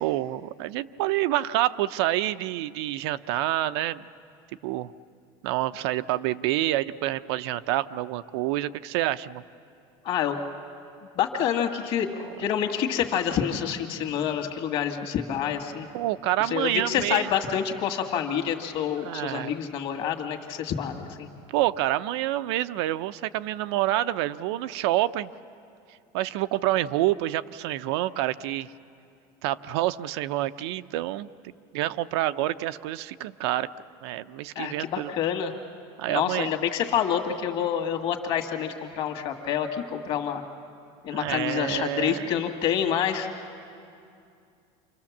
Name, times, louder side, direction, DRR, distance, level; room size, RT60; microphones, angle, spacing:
voice 1, 0.0-4.0 4.6-4.9 5.4-9.4 15.9-17.3 19.0-19.6 21.5-25.3 26.1-28.7 29.4-31.3 31.7-33.7 34.0-35.1 36.0-36.5 41.1-42.3, right 15 dB, 85° right, 12 dB, 0.6 m, -27 dB
voice 2, 10.0-10.4 11.2-15.9 16.4-21.3 34.6-35.5 36.1-40.4 41.0-43.3, left 9 dB, 40° left, 5 dB, 2.0 m, -27 dB
28.5 x 24.5 x 7.3 m, 2.5 s
cardioid pair, 165°, 13 cm